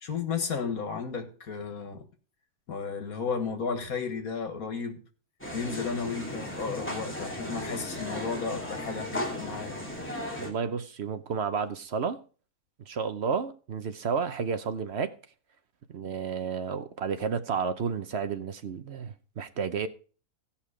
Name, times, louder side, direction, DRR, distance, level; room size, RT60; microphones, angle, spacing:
voice 1, 0.0-2.0 2.7-5.0 5.5-9.8, left 5 dB, 70° left, 2.0 m, -33 dB
sound 1, 5.4-10.5, left 1 dB, 10° left, 2.5 m, -36 dB
voice 2, 10.4-12.2 12.9-15.1 15.9-19.9, right 6 dB, 55° right, 1.0 m, -31 dB
16.0 x 5.7 x 4.9 m
omnidirectional pair, 1.6 m